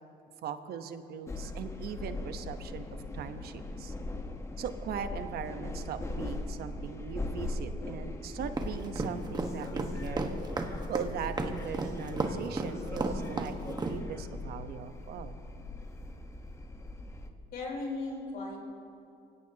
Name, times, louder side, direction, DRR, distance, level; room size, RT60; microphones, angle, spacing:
voice 1, 0.4-2.9 3.1-3.9 4.6-10.4 10.9-15.4, right 7 dB, 65° right, 9 dB, 1.1 m, -40 dB
sound 1, 1.3-17.3, left 2 dB, 15° left, 1.2 m, -40 dB
sound 2, 8.6-14.0, right 3 dB, 25° right, 1.4 m, -32 dB
voice 2, 17.5-18.6, left 3 dB, 60° left, -1 dB, 3.9 m, -36 dB
24.5 x 16.5 x 2.9 m, 2.6 s
cardioid pair, 110°, 17 cm